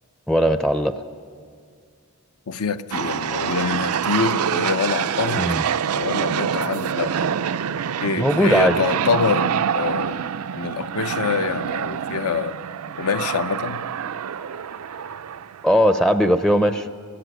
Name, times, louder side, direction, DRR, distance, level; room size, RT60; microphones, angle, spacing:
voice 1, 0.3-0.9 5.4-5.6 8.2-8.8 15.6-16.9, equal, ahead, 8 dB, 0.5 m, -18 dB
voice 2, 2.5-5.6 5.9-7.3 8.0-10.3 10.5-12.6 12.9-13.8, left 5 dB, 75° left, 11 dB, 0.7 m, -25 dB
sound 1, 2.9-16.0, right 8 dB, 75° right, 0.4 m, -26 dB
17.5 x 16.0 x 9.3 m, 2.2 s
head